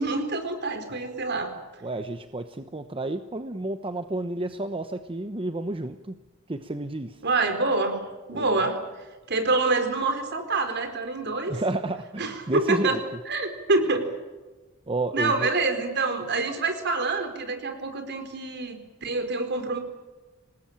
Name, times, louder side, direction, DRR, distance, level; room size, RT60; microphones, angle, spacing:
voice 1, 0.0-1.5 7.2-8.0 8.3-8.8 9.3-11.6 12.2-13.0 13.3-14.0 15.1-19.8, right 3 dB, 55° right, 7 dB, 4.4 m, -26 dB
voice 2, 1.8-6.2 6.5-7.2 8.3-8.7 11.5-13.0 14.9-15.5, right 2 dB, 25° right, 9 dB, 0.9 m, -31 dB
26.5 x 19.5 x 8.9 m, 1.2 s
head